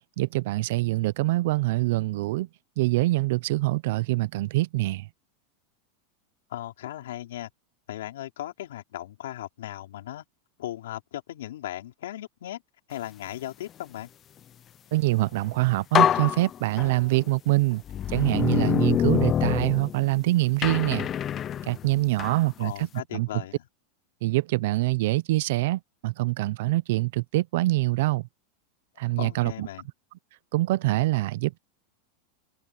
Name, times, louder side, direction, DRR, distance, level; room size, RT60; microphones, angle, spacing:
voice 1, 0.2-2.5 2.8-5.1 14.9-17.8 18.1-21.1 21.6-23.3 24.2-28.3 29.0-29.7 30.5-31.6, right 19 dB, 65° right, 0.5 m, -25 dB
voice 2, 6.5-7.5 7.9-10.2 10.6-12.6 12.9-14.1 22.6-23.6 29.2-29.9, left 13 dB, 85° left, 4.2 m, -37 dB
sound 1, 15.4-15.5 15.9-17.2 17.9-20.2 20.6-22.4, left 9 dB, 25° left, 0.6 m, -25 dB
supercardioid pair, 150°, 0 cm